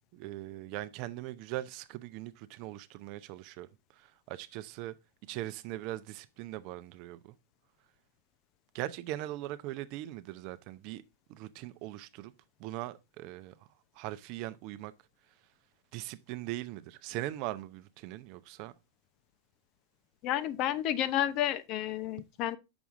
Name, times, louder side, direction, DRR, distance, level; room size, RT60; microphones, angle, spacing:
voice 1, 0.0-3.7 3.9-4.9 5.3-7.3 8.7-11.0 11.3-12.3 12.6-13.5 13.9-14.9 15.9-18.7, right 15 dB, 50° right, 0.6 m, -40 dB
voice 2, 20.2-22.6, left 12 dB, 45° left, 0.7 m, -31 dB
7.0 x 6.1 x 3.7 m
hypercardioid pair, 125°, 0 cm